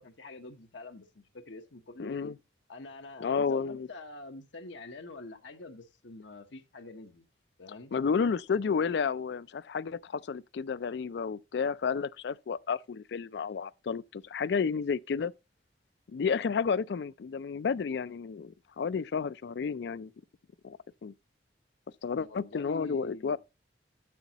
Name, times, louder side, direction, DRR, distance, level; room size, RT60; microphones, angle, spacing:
voice 1, 0.0-2.1 2.7-7.2 7.6-7.9 22.1-23.4, left 2 dB, 85° left, 1.0 m, -46 dB
voice 2, 2.0-2.3 3.2-3.9 7.9-15.3 16.1-20.1 20.6-21.1 22.0-23.4, left 5 dB, 65° left, 0.3 m, -31 dB
9.3 x 8.2 x 2.9 m
head